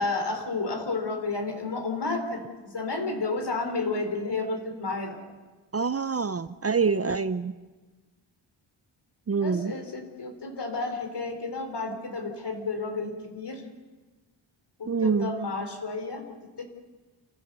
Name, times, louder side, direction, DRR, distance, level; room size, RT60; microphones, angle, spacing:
voice 1, 0.0-5.2 9.4-13.6 14.8-16.6, left 3 dB, 60° left, 4 dB, 4.1 m, -31 dB
voice 2, 5.7-7.5 9.3-9.7 14.9-15.3, right 5 dB, 30° right, 12 dB, 0.7 m, -26 dB
29.0 x 15.0 x 6.8 m, 1.3 s
wide cardioid pair, 85°, 47 cm